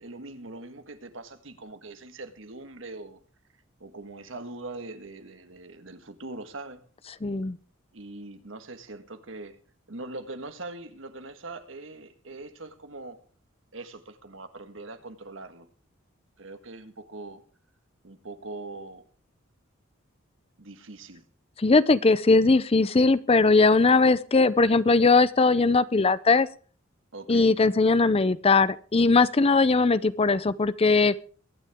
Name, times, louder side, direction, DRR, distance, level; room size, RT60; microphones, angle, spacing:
voice 1, 0.0-3.2 3.8-6.9 7.9-9.6 9.9-13.2 13.7-15.7 16.4-17.4 18.0-19.0 20.6-21.2 27.1-27.6, right 2 dB, 75° right, 1.6 m, -42 dB
voice 2, 7.2-7.6 21.6-26.5 27.3-31.1, left 3 dB, 30° left, 0.5 m, -20 dB
22.5 x 9.7 x 3.6 m
head